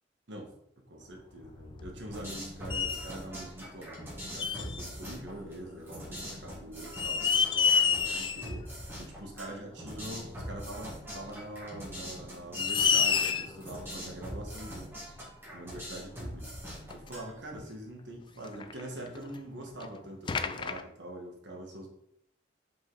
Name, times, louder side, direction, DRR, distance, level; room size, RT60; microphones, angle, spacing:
voice 1, 0.3-14.9 15.5-16.5 16.9-21.9, right 1 dB, 70° right, 1 dB, 1.4 m, -44 dB
sound 1, 1.4-2.4 2.7-3.1 4.4-4.8 6.2-6.3 6.8-8.6 8.9-9.0 10.5-10.6 11.6-11.7 12.2-12.3 12.5-13.6 14.9-15.0 15.8-15.9 16.1-16.2 16.9-17.1 18.4-19.4 19.8-19.9 20.3-20.8, left 6 dB, 25° left, 0.3 m, -28 dB
sound 2, 2.1-17.6, equal, 10° right, 2.1 m, -43 dB
5.4 x 4.9 x 4.0 m, 0.73 s
head